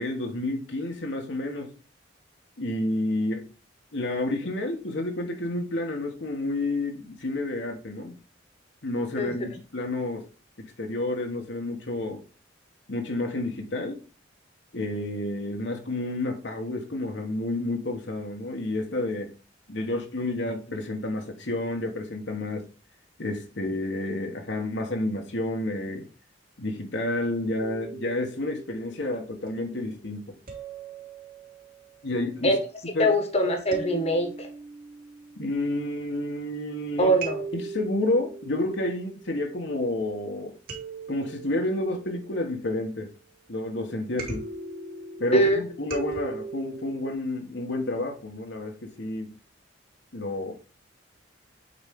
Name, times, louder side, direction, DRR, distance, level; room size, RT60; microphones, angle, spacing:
voice 1, 0.0-1.7 2.6-3.5 3.9-8.2 8.8-10.3 10.6-12.2 12.9-14.0 14.7-19.3 19.7-22.7 23.2-26.1 26.6-30.4 32.0-32.5 32.9-33.1 35.4-37.1 37.5-40.5 41.1-43.1 43.5-44.5 45.2-49.3 50.1-50.5, left 2 dB, 65° left, 1.2 m, -30 dB
sound 1, 27.6-29.7 30.5-32.0 33.7-36.6 37.2-39.8 40.7-42.9 44.2-47.1, right 3 dB, 50° right, 2.6 m, -40 dB
voice 2, 33.0-34.5 37.0-37.4 45.3-45.6, right 1 dB, 35° left, 1.3 m, -22 dB
8.0 x 4.4 x 3.5 m
head